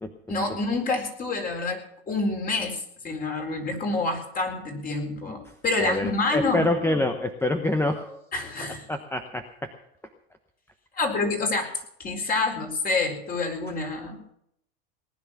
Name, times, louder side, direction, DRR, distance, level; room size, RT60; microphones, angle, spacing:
voice 1, 0.3-6.7 8.3-8.9 11.0-11.7 12.0-14.3, left 3 dB, 30° left, 3 dB, 4.3 m, -28 dB
voice 2, 5.8-8.2 8.9-9.7, left 1 dB, 10° left, 7 dB, 1.0 m, -26 dB
19.0 x 10.5 x 6.0 m, 0.73 s
supercardioid pair, 120°, 31 cm